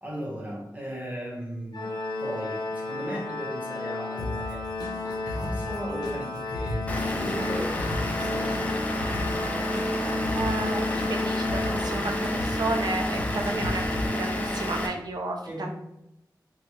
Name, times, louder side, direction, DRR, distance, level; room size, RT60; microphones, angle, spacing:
voice 1, 0.0-1.9 2.2-4.6 5.0-8.8 15.4-15.7, equal, 20° right, -4 dB, 0.9 m, -37 dB
Organ, 1.7-12.5, left 3 dB, 85° left, 0.3 m, -34 dB
sound 1, 4.2-14.1, left 1 dB, 65° left, 0.8 m, -36 dB
Vehicle / Engine, 6.9-14.9, left 1 dB, 20° left, 0.4 m, -29 dB
voice 2, 10.3-13.8 14.1-15.4, right 2 dB, 65° right, 2 dB, 0.5 m, -32 dB
3.1 x 2.3 x 2.8 m, 0.86 s
wide cardioid pair, 100°, 7 cm